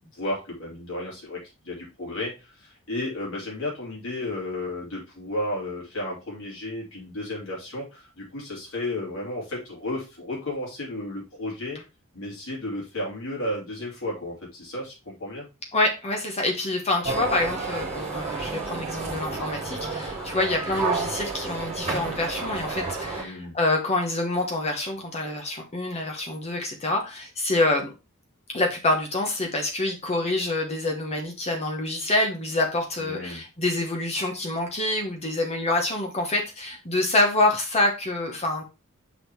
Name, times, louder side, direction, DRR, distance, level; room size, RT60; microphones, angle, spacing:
voice 1, 0.1-11.8 12.1-15.5 23.1-23.6 33.0-33.4, left 1 dB, 70° left, -3 dB, 3.1 m, -33 dB
voice 2, 15.7-27.9 28.5-38.7, left 2 dB, 30° left, 2 dB, 1.1 m, -26 dB
sound 1, 17.0-23.2, right 4 dB, 30° right, 2.0 m, -31 dB
6.2 x 3.7 x 4.6 m, 0.28 s
head